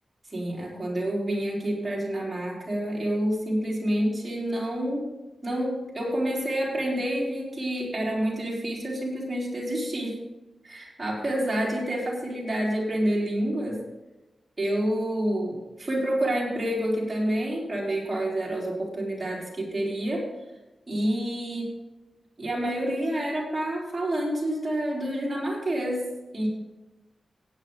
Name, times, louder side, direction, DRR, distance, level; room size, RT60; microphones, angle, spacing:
voice 1, 0.3-5.1 5.4-10.2 10.6-13.8 14.6-20.3 20.9-21.7 22.4-26.5, right 1 dB, 20° right, -5 dB, 4.0 m, -28 dB
16.5 x 8.7 x 3.9 m, 1.0 s
wide cardioid pair, 155°, 0 cm